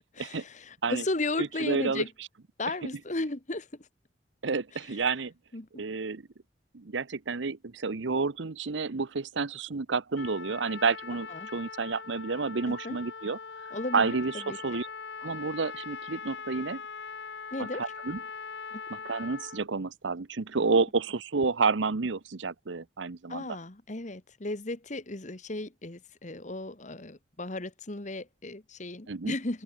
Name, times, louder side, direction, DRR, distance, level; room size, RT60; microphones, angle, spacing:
voice 1, 0.2-2.1 2.6-3.9 5.5-5.8 11.3-11.5 12.7-13.0 13.7-14.2 14.5-14.6 17.5-17.8 18.7-18.8 23.3-29.6, left 2 dB, 40° left, 1.5 m, -35 dB
voice 2, 1.4-2.0 4.4-5.3 5.8-6.2 6.7-13.4 13.9-14.9 15.2-16.8 17.6-18.2 19.0-23.4 29.1-29.3, right 4 dB, 75° right, 0.8 m, -30 dB
Trumpet, 10.2-19.7, left 5 dB, 65° left, 1.2 m, -41 dB
head